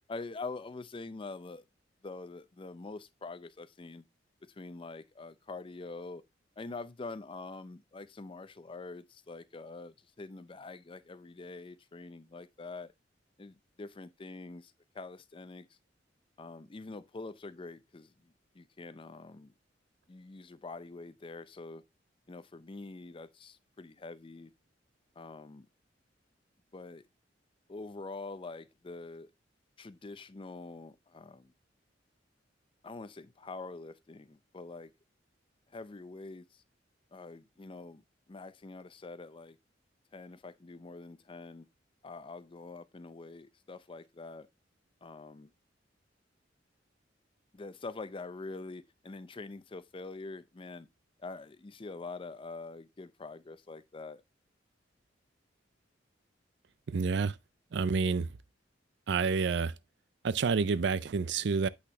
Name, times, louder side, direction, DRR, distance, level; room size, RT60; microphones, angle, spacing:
voice 1, 0.1-1.6 2.0-4.0 4.6-6.2 6.6-12.9 13.4-15.7 16.4-19.5 20.1-21.8 22.3-24.5 25.2-25.7 26.7-27.0 27.7-29.3 29.8-31.5 32.8-34.9 35.7-36.5 37.1-38.0 38.3-39.6 40.1-41.7 42.0-44.5 45.0-45.5 47.5-50.9 51.2-54.2, left 3 dB, 30° left, 0.5 m, -45 dB
voice 2, 56.9-57.4 57.7-58.3 59.1-59.7 60.2-61.7, right 5 dB, 65° right, 0.4 m, -29 dB
8.3 x 5.8 x 2.9 m
head